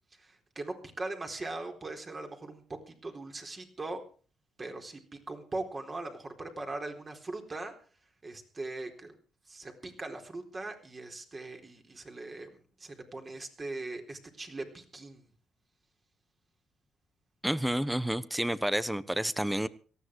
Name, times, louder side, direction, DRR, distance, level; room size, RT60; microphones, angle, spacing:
voice 1, 0.2-4.0 4.6-7.7 8.2-9.2 9.5-15.3, right 2 dB, 30° right, 4 dB, 4.1 m, -40 dB
voice 2, 17.4-19.7, right 1 dB, 5° right, 16 dB, 1.1 m, -30 dB
18.5 x 14.0 x 4.7 m, 0.40 s
cardioid pair, 90°, 0 cm